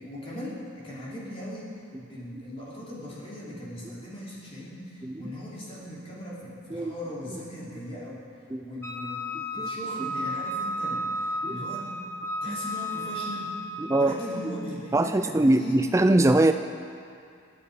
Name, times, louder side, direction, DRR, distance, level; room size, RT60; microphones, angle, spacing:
voice 1, 0.0-1.7 2.1-8.2 8.6-9.3 9.5-11.9 12.4-13.5 13.9-15.8, left 1 dB, 25° left, -6 dB, 3.3 m, -39 dB
Wind instrument woodwind instrument, 8.8-14.2, equal, 10° left, 1.0 m, -33 dB
voice 2, 9.3-9.7 11.4-11.6 12.5-12.6 13.8-14.2 14.9-16.5, right 2 dB, 15° right, 8 dB, 0.3 m, -22 dB
27.0 x 9.7 x 5.0 m, 2.4 s
head